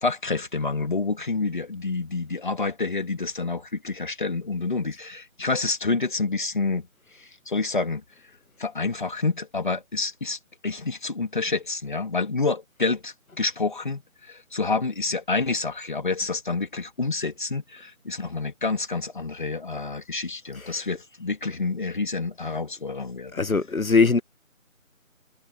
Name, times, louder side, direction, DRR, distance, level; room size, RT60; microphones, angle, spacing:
voice 1, 0.0-6.9 7.2-8.0 8.6-23.4, left 3 dB, 35° left, 2.5 m, -28 dB
voice 2, 23.3-24.2, left 4 dB, 75° left, 1.3 m, -21 dB
figure-of-eight pair, 170°, 41 cm